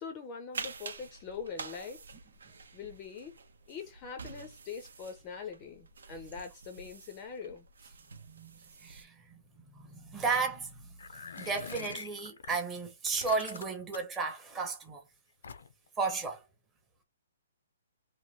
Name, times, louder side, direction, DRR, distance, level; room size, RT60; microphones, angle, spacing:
voice 1, 0.0-2.0 2.7-3.4 3.7-7.7, left 6 dB, 20° left, 0.5 m, -43 dB
sound 1, 0.5-9.0, right 4 dB, 85° right, 0.7 m, -47 dB
voice 2, 8.3-9.4 9.7-10.7 11.4-15.0 16.0-16.4, right 4 dB, 10° right, 0.7 m, -34 dB
sound 2, 11.0-12.6 13.1-14.2 15.4-15.9, left 5 dB, 75° left, 0.5 m, -44 dB
3.0 x 2.2 x 3.1 m
hypercardioid pair, 165°, 0 cm